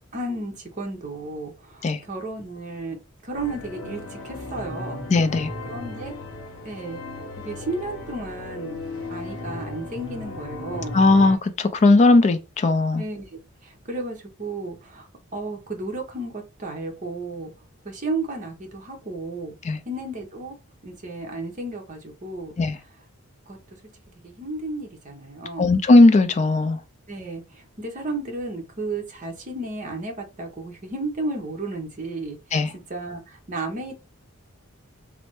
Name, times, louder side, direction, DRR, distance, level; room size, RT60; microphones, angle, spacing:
voice 1, 0.1-3.0 3.2-5.0 5.7-6.1 6.6-7.0 7.4-8.8 9.1-11.0 12.9-15.1 15.3-17.5 17.8-19.5 19.9-20.6 20.8-22.5 23.5-23.6 24.2-25.7 27.1-32.4 32.7-33.9, right 2 dB, 35° right, 0.8 m, -33 dB
sound 1, 3.3-11.4, left 2 dB, 75° left, 0.8 m, -36 dB
voice 2, 5.1-5.5 10.9-13.0 19.6-19.8 22.6-22.8 25.6-26.8 32.5-32.7, left 2 dB, 30° left, 0.3 m, -17 dB
3.1 x 2.0 x 3.0 m
head